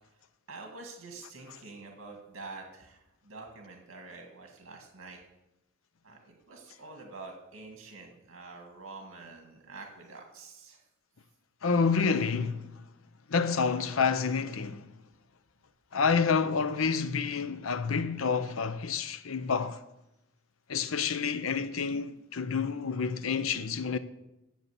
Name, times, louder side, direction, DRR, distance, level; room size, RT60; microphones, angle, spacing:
voice 1, 0.5-5.2 6.0-10.8, right 3 dB, 75° right, 2.0 m, -47 dB
voice 2, 11.6-12.7 13.3-14.9 15.9-19.8 20.7-24.0, left 5 dB, 90° left, 0.7 m, -28 dB
9.4 x 7.5 x 8.1 m
head